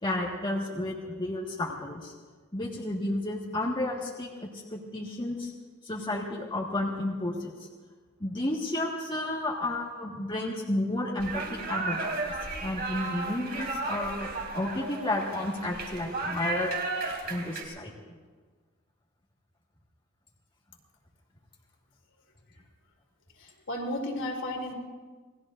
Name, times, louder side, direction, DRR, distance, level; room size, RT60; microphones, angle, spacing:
voice 1, 0.0-2.1 2.5-5.5 5.8-7.5 8.2-12.2 12.6-16.8 17.3-17.9, left 1 dB, 25° left, -3 dB, 1.7 m, -32 dB
sound 1, 11.2-17.6, right 3 dB, 50° right, 3.0 m, -34 dB
voice 2, 23.3-24.7, left 1 dB, 60° left, 1 dB, 3.1 m, -33 dB
27.5 x 20.0 x 2.6 m, 1.4 s
head